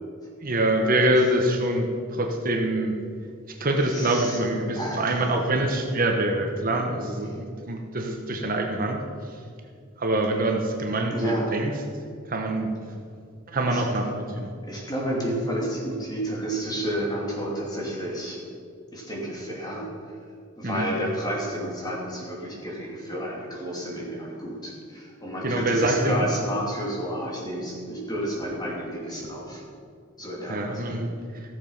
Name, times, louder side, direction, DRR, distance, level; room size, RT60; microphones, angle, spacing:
voice 1, 0.4-2.9 3.6-9.0 10.0-11.7 12.3-12.7 13.5-14.5 20.6-20.9 25.4-26.3 30.5-31.1, right 1 dB, 45° right, 2 dB, 1.1 m, -25 dB
voice 2, 3.9-4.4 4.7-5.3 7.3-7.4 11.1-11.5 13.7-13.8 14.7-18.4 18.9-19.9 20.6-29.6 30.2-30.8, equal, 20° left, -3 dB, 2.7 m, -31 dB
15.5 x 7.2 x 5.6 m, 2.3 s
head